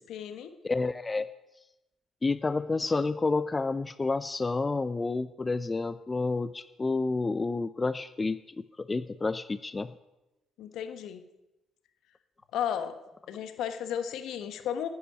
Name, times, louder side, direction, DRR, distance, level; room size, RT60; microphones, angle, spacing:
voice 1, 0.1-0.5 10.6-11.2 12.5-13.0 13.3-14.9, left 9 dB, 65° left, 8 dB, 1.3 m, -34 dB
voice 2, 0.6-1.3 2.2-9.9, left 3 dB, 25° left, 13 dB, 0.6 m, -30 dB
10.0 x 10.0 x 9.6 m, 0.99 s
hypercardioid pair, 55°, 0 cm